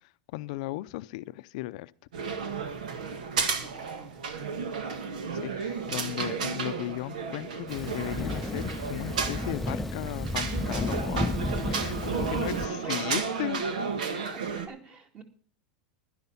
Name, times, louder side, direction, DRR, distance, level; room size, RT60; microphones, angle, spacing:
voice 1, 0.0-1.9 5.3-11.4 11.7-13.6, left 18 dB, 65° left, 0.5 m, -36 dB
sound 1, 2.1-14.7, right 5 dB, 90° right, 1.7 m, -33 dB
voice 2, 3.6-4.9 12.4-13.1 14.1-15.2, right 5 dB, 25° right, 2.2 m, -48 dB
Thunder, 7.7-12.7, left 1 dB, 5° left, 0.5 m, -33 dB
11.5 x 10.5 x 5.7 m
supercardioid pair, 130°, 4 cm